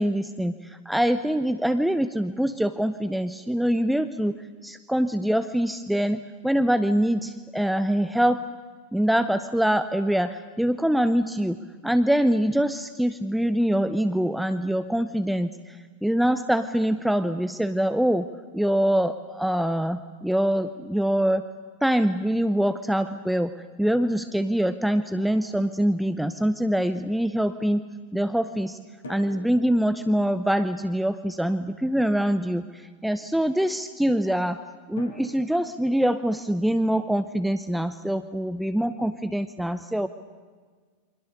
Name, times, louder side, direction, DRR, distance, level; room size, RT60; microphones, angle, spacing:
voice 1, 0.0-8.4 8.9-11.6 11.8-18.3 18.5-21.5 21.8-27.8 28.1-28.8 29.1-34.6 34.9-40.1, equal, ahead, 11 dB, 0.9 m, -24 dB
Drum, 25.2-26.6 29.0-32.0 35.0-37.8, left 1 dB, 65° left, 3.5 m, -48 dB
28.5 x 25.0 x 6.7 m, 1.5 s
figure-of-eight pair, 90°, 0 cm